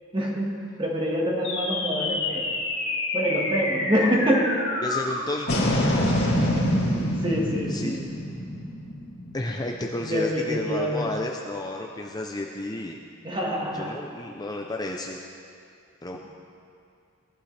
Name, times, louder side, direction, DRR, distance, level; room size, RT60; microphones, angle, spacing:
voice 1, 0.1-2.5 3.1-4.5 6.2-6.3 6.9-8.0 10.0-11.1 13.2-14.0, equal, 20° right, -2 dB, 1.5 m, -26 dB
sound 1, 1.4-10.0, left 1 dB, 50° left, 2.2 m, -26 dB
voice 2, 4.8-5.9 7.7-8.0 9.3-13.0 13.7-15.2 16.0-16.2, left 1 dB, 20° left, 1 dB, 0.5 m, -32 dB
17.5 x 11.5 x 3.3 m, 2.5 s
head